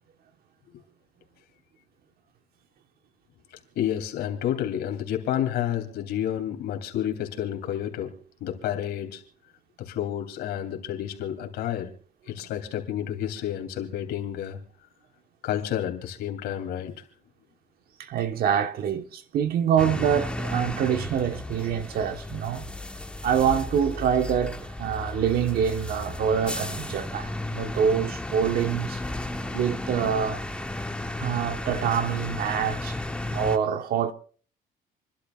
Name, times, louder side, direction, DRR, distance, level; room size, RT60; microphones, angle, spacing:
voice 1, 3.7-9.2 9.8-11.9 12.2-14.6 15.4-17.0, left 10 dB, 80° left, 3.1 m, -30 dB
voice 2, 18.0-22.6 23.2-29.0 29.5-30.4 31.2-33.0 33.3-34.1, right 8 dB, 65° right, 1.3 m, -25 dB
sound 1, 19.8-33.6, left 2 dB, 5° left, 1.2 m, -34 dB
28.5 x 12.0 x 2.4 m
cardioid pair, 110°, 17 cm